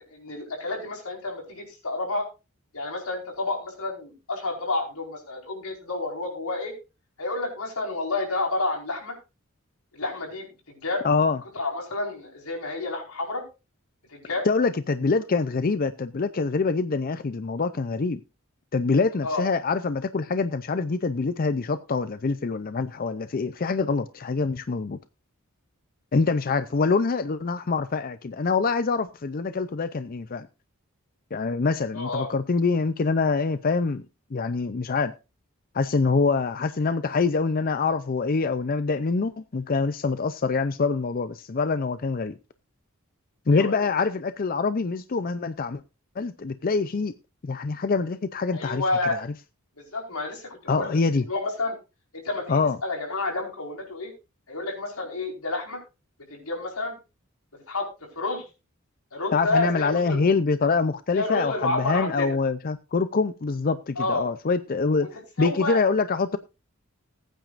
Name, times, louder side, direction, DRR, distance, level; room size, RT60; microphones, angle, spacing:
voice 1, 0.1-2.2 2.7-6.7 7.2-9.1 9.9-11.1 11.5-13.4 14.1-14.5 19.2-19.4 26.4-26.6 31.9-32.3 43.5-43.9 48.5-49.2 49.8-51.7 52.1-54.1 54.5-55.8 56.3-57.0 57.5-57.9 58.1-58.5 59.1-60.2 61.1-62.4 64.0-64.3 65.0-65.1 65.4-65.8, left 2 dB, 85° left, 4.7 m, -30 dB
voice 2, 11.0-11.4 14.4-18.2 18.7-25.0 26.1-30.5 31.3-34.0 34.3-35.1 35.7-42.4 43.5-45.8 46.2-47.1 47.4-48.8 49.2-49.3 50.7-51.2 52.5-52.8 59.3-65.1 65.4-66.4, left 4 dB, 40° left, 0.5 m, -25 dB
20.0 x 9.1 x 2.5 m
head